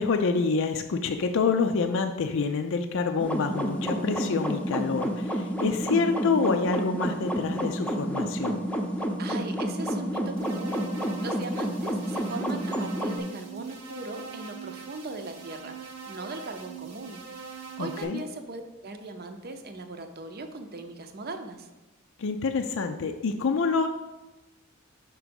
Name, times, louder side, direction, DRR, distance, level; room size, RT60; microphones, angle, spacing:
voice 1, 0.0-8.6 17.8-18.2 22.2-23.9, left 4 dB, 65° left, 6 dB, 0.4 m, -27 dB
sound 1, 3.2-13.2, equal, 5° left, 0.7 m, -30 dB
voice 2, 9.2-17.2 17.5-21.7, right 2 dB, 50° right, 6 dB, 0.7 m, -39 dB
sound 2, 10.4-18.0, right 6 dB, 85° right, 1.1 m, -42 dB
5.9 x 4.6 x 5.2 m, 1.1 s
head